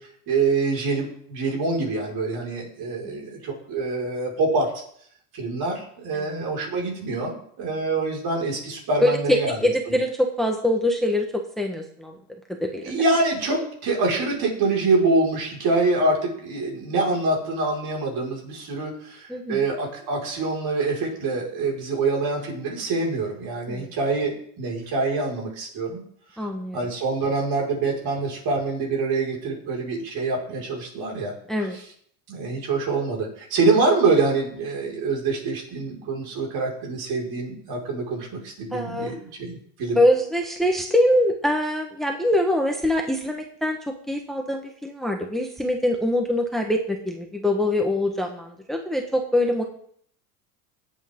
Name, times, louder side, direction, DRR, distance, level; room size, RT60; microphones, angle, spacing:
voice 1, 0.3-4.7 5.3-9.6 9.9-10.0 12.8-26.0 26.7-31.3 32.3-40.0, right 3 dB, 50° right, -1 dB, 5.3 m, -25 dB
voice 2, 9.0-12.1 12.5-12.8 19.3-19.6 23.7-23.9 26.4-26.9 31.5-31.8 38.7-39.1 39.9-43.8 44.1-49.6, left 1 dB, ahead, 2 dB, 1.3 m, -24 dB
17.5 x 8.5 x 3.7 m, 0.63 s
supercardioid pair, 115°, 46 cm